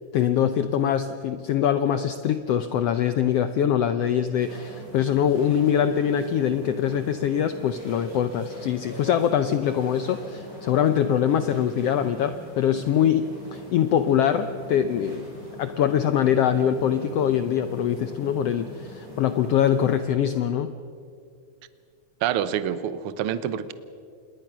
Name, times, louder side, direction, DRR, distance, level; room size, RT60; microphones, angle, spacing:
voice 1, 0.1-15.3 15.6-20.7, left 9 dB, 75° left, 10 dB, 1.4 m, -23 dB
sound 1, 4.4-20.0, equal, 40° right, 7.5 m, -42 dB
voice 2, 22.2-23.7, right 9 dB, 75° right, 14 dB, 1.2 m, -27 dB
27.0 x 21.0 x 6.1 m, 2.3 s
omnidirectional pair, 3.6 m